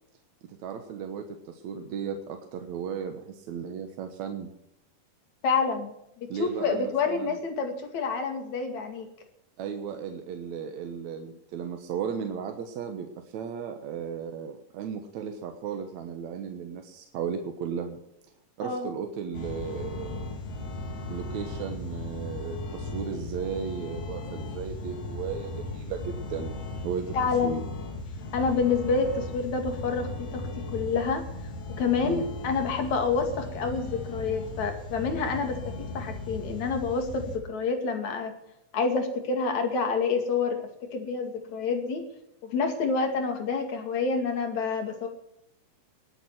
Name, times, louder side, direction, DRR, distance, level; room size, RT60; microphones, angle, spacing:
voice 1, 0.5-4.5 6.3-7.4 9.6-18.0 18.6-20.4 21.1-26.6 26.8-27.2 27.4-27.6 32.0-32.3, right 7 dB, 65° right, 5 dB, 2.3 m, -35 dB
voice 2, 5.4-9.1 18.6-18.9 27.1-27.6 28.3-31.2 31.8-38.3 38.7-40.6 40.9-42.0 42.4-45.1, left 4 dB, 60° left, 5 dB, 3.6 m, -28 dB
sound 1, 19.3-37.4, left 2 dB, 85° left, 4.3 m, -37 dB
20.0 x 8.6 x 6.1 m, 0.79 s
omnidirectional pair, 3.7 m